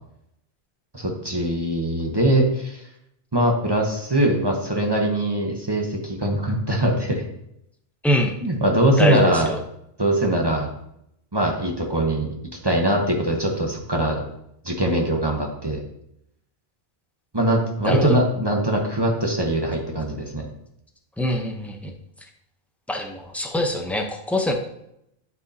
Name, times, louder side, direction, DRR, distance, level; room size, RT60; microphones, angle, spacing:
voice 1, 0.9-2.8 3.3-7.2 8.4-9.5 10.0-10.7 11.3-12.3 12.6-14.2 14.6-15.8 17.3-20.5, right 1 dB, 25° right, 0 dB, 0.9 m, -22 dB
voice 2, 9.0-9.6 17.9-18.2 21.2-21.9 22.9-24.5, left 1 dB, ahead, 2 dB, 0.6 m, -24 dB
11.5 x 4.7 x 2.8 m, 0.78 s
omnidirectional pair, 1.0 m